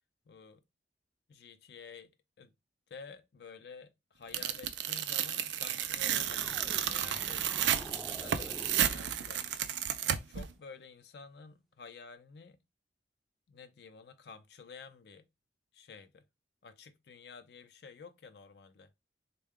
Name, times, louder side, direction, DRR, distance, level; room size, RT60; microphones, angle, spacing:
voice 1, 0.3-0.6 1.3-2.1 2.4-2.5 2.9-9.4 10.0-12.6 13.5-15.3 15.7-16.2 16.6-18.9, left 5 dB, 60° left, 0.4 m, -51 dB
Tearing, 4.3-10.5, right 10 dB, 70° right, 0.4 m, -32 dB
sound 1, 6.1-10.1, equal, ahead, 0.4 m, -48 dB
3.6 x 2.2 x 3.5 m
head